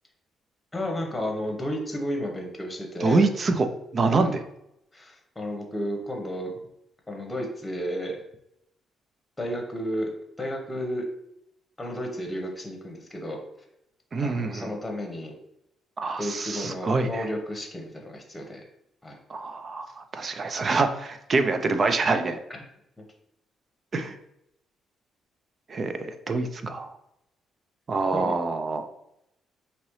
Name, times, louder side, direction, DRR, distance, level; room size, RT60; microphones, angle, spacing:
voice 1, 0.7-3.3 4.1-4.3 4.9-6.5 7.1-8.2 9.4-10.1 10.4-11.1 11.8-13.4 14.2-15.3 16.2-18.6 19.0-19.2 28.1-28.4, equal, 10° left, 2 dB, 1.1 m, -32 dB
voice 2, 3.0-4.4 14.1-14.7 16.0-17.3 19.3-22.4 23.9-24.2 25.7-26.9 27.9-28.9, right 3 dB, 40° right, 8 dB, 0.5 m, -26 dB
5.2 x 2.8 x 3.2 m, 0.80 s
cardioid pair, 90°, 0 cm